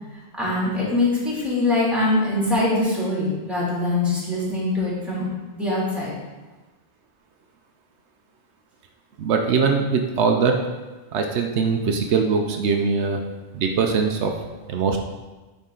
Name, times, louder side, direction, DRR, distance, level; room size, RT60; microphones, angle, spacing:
voice 1, 0.4-5.3 5.5-6.1, left 2 dB, ahead, -7 dB, 2.4 m, -23 dB
voice 2, 9.2-10.6 11.1-13.2 13.5-14.3 14.7-15.0, right 5 dB, 80° right, 4 dB, 1.0 m, -21 dB
9.8 x 4.1 x 3.8 m, 1.2 s
omnidirectional pair, 1.1 m